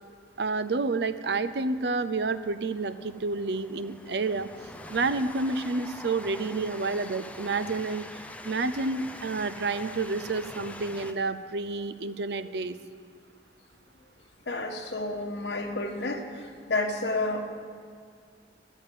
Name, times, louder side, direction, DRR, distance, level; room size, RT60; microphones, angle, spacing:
voice 1, 0.4-4.5 4.9-12.8, right 3 dB, 70° right, 12 dB, 0.6 m, -29 dB
Train, 1.4-11.1, left 1 dB, 10° left, 0.5 m, -45 dB
voice 2, 14.5-17.4, left 2 dB, 75° left, 4 dB, 1.3 m, -30 dB
14.0 x 7.3 x 9.2 m, 2.1 s
head